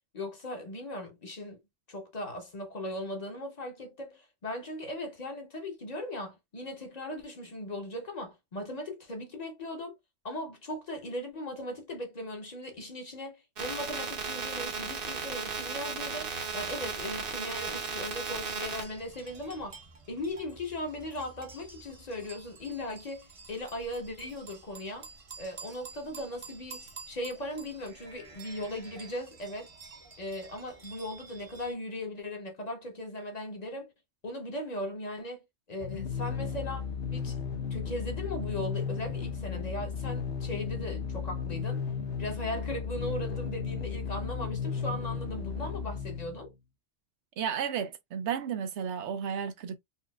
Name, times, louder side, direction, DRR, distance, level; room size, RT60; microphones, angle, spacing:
voice 1, 0.1-1.6 1.9-10.0 10.2-19.8 20.1-25.1 25.4-29.7 30.2-33.9 34.2-37.4 37.7-41.8 42.2-46.5, left 1 dB, 40° left, 0.8 m, -38 dB
sound 1, 13.6-18.8, right 5 dB, 55° right, 1.0 m, -35 dB
sound 2, 16.4-31.7, right 4 dB, 40° right, 0.6 m, -50 dB
sound 3, 35.8-46.5, left 6 dB, 85° left, 0.9 m, -34 dB
voice 2, 47.4-49.8, right 8 dB, 90° right, 0.9 m, -33 dB
4.0 x 2.4 x 2.2 m
omnidirectional pair, 1.1 m